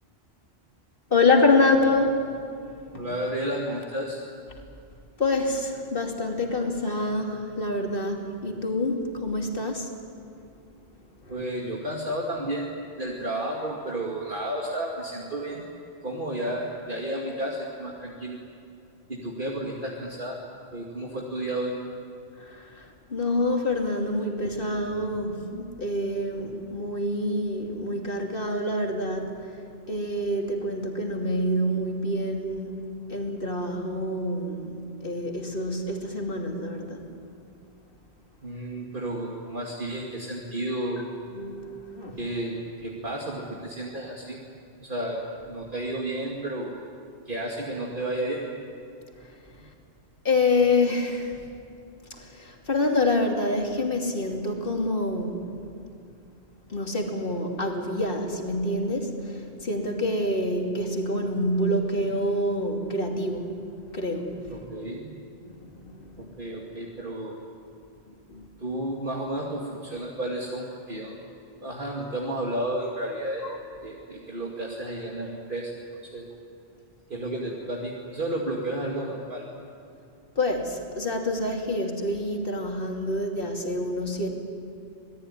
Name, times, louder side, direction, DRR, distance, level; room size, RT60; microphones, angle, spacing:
voice 1, 1.1-2.3 2.9-3.1 5.2-9.9 11.3-11.4 22.4-29.6 29.9-32.8 33.1-34.7 35.0-37.1 41.3-42.2 50.2-51.4 52.2-55.5 56.7-64.6 65.6-66.1 68.3-68.5 73.4-73.6 80.4-84.3, left 2 dB, 55° left, 2 dB, 3.1 m, -27 dB
voice 2, 3.0-4.2 11.3-12.7 13.0-15.6 16.0-18.4 19.1-20.4 20.7-21.7 38.4-41.0 42.2-44.4 44.8-46.7 47.3-48.5 64.5-65.1 66.2-67.4 68.6-71.2 71.6-73.5 73.8-75.7 76.1-76.2 77.1-79.5, right 1 dB, 50° right, -2 dB, 2.7 m, -32 dB
27.0 x 19.0 x 10.0 m, 2.5 s
omnidirectional pair, 1.1 m